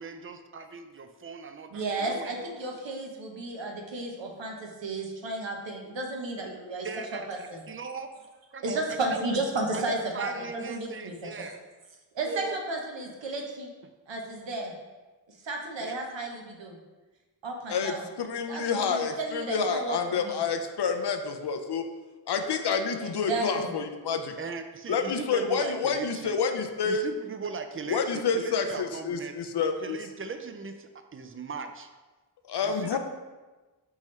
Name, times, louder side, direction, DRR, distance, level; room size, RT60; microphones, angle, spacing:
voice 1, 0.0-2.3 6.8-8.1 8.5-8.8 9.1-9.2 9.7-11.6 12.3-12.6 15.8-16.0 24.4-26.4 26.8-29.5 29.8-31.9 32.6-33.0, right 4 dB, 30° right, 8 dB, 0.4 m, -39 dB
voice 2, 1.7-6.9 7.1-7.6 8.6-11.5 12.1-13.7 14.1-14.7 15.4-16.8 17.4-18.1 18.5-20.4 23.0-23.7, right 2 dB, 85° right, 1 dB, 0.8 m, -33 dB
voice 3, 17.7-21.9 22.3-24.3 24.9-27.0 27.9-30.0 32.4-33.0, left 5 dB, 65° left, 6 dB, 0.5 m, -28 dB
4.2 x 3.7 x 3.1 m, 1.2 s
cardioid pair, 45°, 43 cm